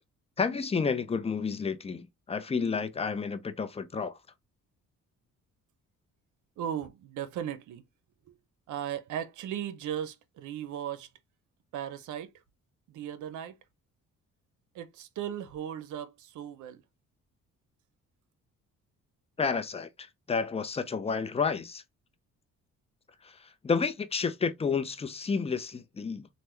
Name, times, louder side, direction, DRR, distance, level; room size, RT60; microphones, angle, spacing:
voice 1, 0.4-4.2 19.4-21.8 23.2-26.3, left 5 dB, 20° left, 0.5 m, -31 dB
voice 2, 6.6-7.8 8.3-8.4 8.7-11.1 11.7-12.3 12.9-13.6 14.7-16.8, right 10 dB, 75° right, 0.7 m, -37 dB
3.4 x 2.2 x 3.0 m
cardioid pair, 90°, 30 cm